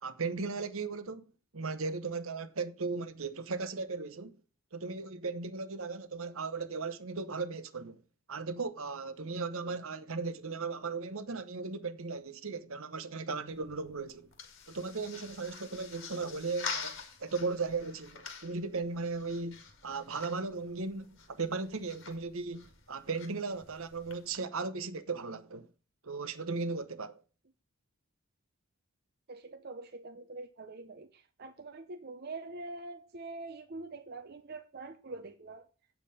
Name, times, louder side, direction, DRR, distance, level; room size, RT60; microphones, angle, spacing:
voice 1, 0.0-1.3 1.5-4.4 4.7-8.0 8.3-14.3 14.7-25.7 26.0-27.2, right 4 dB, 65° right, 0.9 m, -37 dB
sound 1, 13.5-24.4, left 5 dB, 60° left, 2.0 m, -46 dB
voice 2, 29.3-35.7, right 3 dB, 45° right, 0.6 m, -44 dB
8.5 x 7.0 x 5.6 m
head